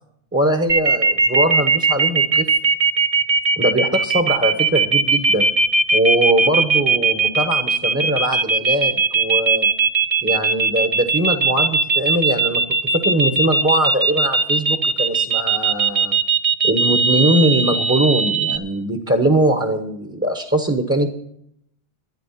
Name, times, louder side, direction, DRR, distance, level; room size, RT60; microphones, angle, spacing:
voice 1, 0.3-2.5 3.6-5.5 5.9-9.7 10.2-12.6 12.9-16.2 16.6-21.1, right 1 dB, 15° right, 5 dB, 1.1 m, -21 dB
sound 1, 0.7-18.6, right 4 dB, 35° right, 0.9 m, -18 dB
13.0 x 10.5 x 5.8 m, 0.71 s
omnidirectional pair, 1.1 m